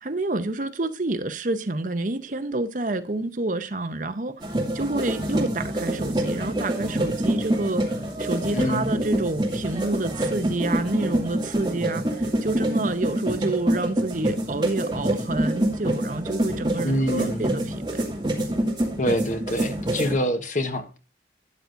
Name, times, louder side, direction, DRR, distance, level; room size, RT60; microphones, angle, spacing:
voice 1, 0.0-4.3 4.7-18.1, right 2 dB, 45° right, 0.7 m, -28 dB
sound 1, 4.4-20.1, right 1 dB, 25° right, 2.3 m, -26 dB
voice 2, 8.5-8.9 16.8-17.6 19.0-21.0, equal, 40° left, 1.2 m, -26 dB
12.5 x 9.5 x 2.6 m
head